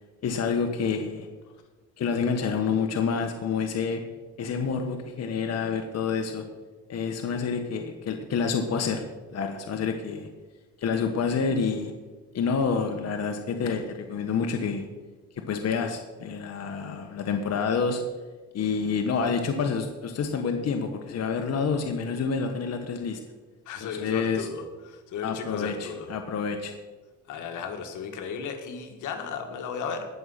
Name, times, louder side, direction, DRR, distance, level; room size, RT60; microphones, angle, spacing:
voice 1, 0.2-1.3 2.0-4.0 4.4-6.5 6.9-9.0 9.3-10.3 10.8-11.9 12.3-14.9 15.5-18.0 18.5-23.2 23.8-24.5 25.2-26.7, left 5 dB, 55° left, 5 dB, 1.3 m, -28 dB
voice 2, 23.7-26.1 27.3-30.1, left 6 dB, 80° left, 5 dB, 1.8 m, -35 dB
18.0 x 6.5 x 5.7 m, 1.3 s
cardioid pair, 90°, 30 cm